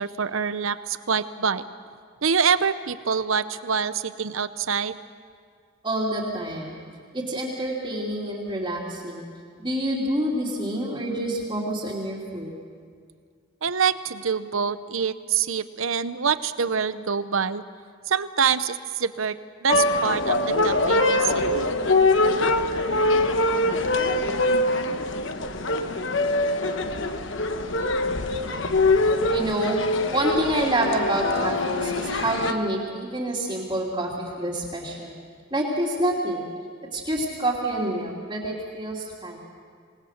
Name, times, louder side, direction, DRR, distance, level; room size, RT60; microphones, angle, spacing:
voice 1, 0.0-1.6 2.2-5.0 13.6-17.6 18.1-21.4, right 6 dB, 80° right, 13 dB, 0.8 m, -25 dB
voice 2, 5.8-6.8 7.1-9.3 9.6-12.5 29.3-29.8 30.1-35.2 35.5-36.5 36.9-39.4, right 1 dB, 20° right, -6 dB, 2.8 m, -27 dB
sound 1, 19.7-32.5, left 2 dB, 65° left, 1.1 m, -23 dB
27.0 x 19.0 x 6.6 m, 2.1 s
head